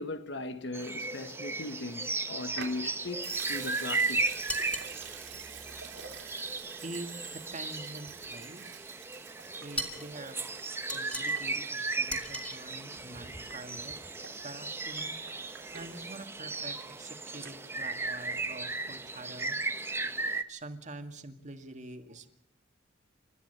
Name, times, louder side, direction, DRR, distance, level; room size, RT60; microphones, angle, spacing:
voice 1, 0.0-4.2, left 2 dB, 60° left, 1.5 m, -38 dB
sound 1, 0.7-20.4, right 3 dB, 10° right, 1.1 m, -36 dB
Water tap faucet / Sink (filling or washing) / Liquid, 2.5-17.2 17.4-17.5, right 8 dB, 70° right, 3.4 m, -48 dB
sound 2, 4.5-4.9 9.8-10.1 10.9-11.5 12.1-12.6, equal, 5° left, 2.8 m, -37 dB
voice 2, 6.8-8.9 9.6-10.5 10.9-14.0 14.4-15.2 15.4-19.6 20.5-22.3, right 2 dB, 35° right, 2.0 m, -45 dB
30.0 x 13.5 x 6.8 m
head